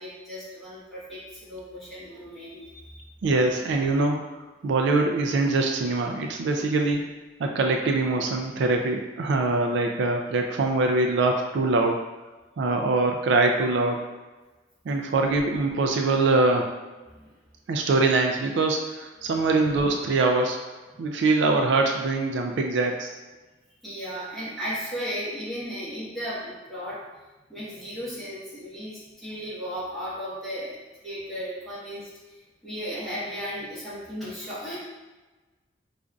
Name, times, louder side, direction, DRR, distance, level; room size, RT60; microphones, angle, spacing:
voice 1, 0.0-3.1 17.1-17.3 21.0-21.1 23.8-27.0 27.5-30.8 31.0-32.1 32.6-34.8, equal, ahead, -10 dB, 1.1 m, -35 dB
voice 2, 3.2-7.0 7.4-12.0 12.6-14.1 14.9-16.7 17.7-20.6 21.0-23.1, right 3 dB, 70° right, 2 dB, 0.3 m, -23 dB
5.0 x 2.5 x 2.3 m, 1.2 s
head